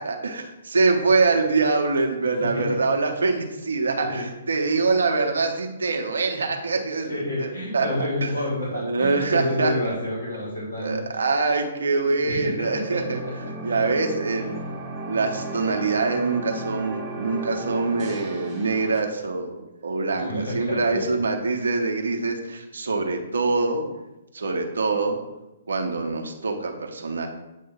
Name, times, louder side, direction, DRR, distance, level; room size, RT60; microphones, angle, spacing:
voice 1, 0.0-7.9 8.2-8.3 8.7-10.0 10.8-13.2 13.6-14.6 15.1-23.9 24.3-25.2 25.7-27.3, right 3 dB, 65° right, 3 dB, 1.0 m, -24 dB
voice 2, 7.1-11.0 12.2-12.7 13.6-13.8 20.1-21.1, left 1 dB, 55° left, -6 dB, 2.4 m, -29 dB
sound 1, 12.6-19.0, right 2 dB, 10° right, 1.3 m, -35 dB
8.1 x 2.7 x 5.7 m, 0.99 s
figure-of-eight pair, 125°, 0 cm